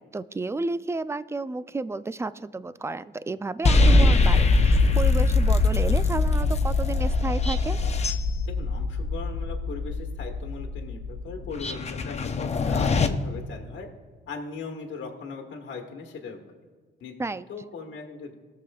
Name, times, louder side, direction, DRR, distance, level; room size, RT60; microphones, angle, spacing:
voice 1, 0.0-7.8 17.2-17.5, right 3 dB, 15° right, 14 dB, 0.3 m, -32 dB
sound 1, 3.6-13.1, left 3 dB, 35° left, 0.7 m, -22 dB
voice 2, 8.4-11.0 11.2-13.9 14.3-16.4 17.0-17.1 17.5-18.3, left 5 dB, 70° left, 2 dB, 1.3 m, -38 dB
19.5 x 6.8 x 2.3 m, 1.5 s
cardioid pair, 90°, 20 cm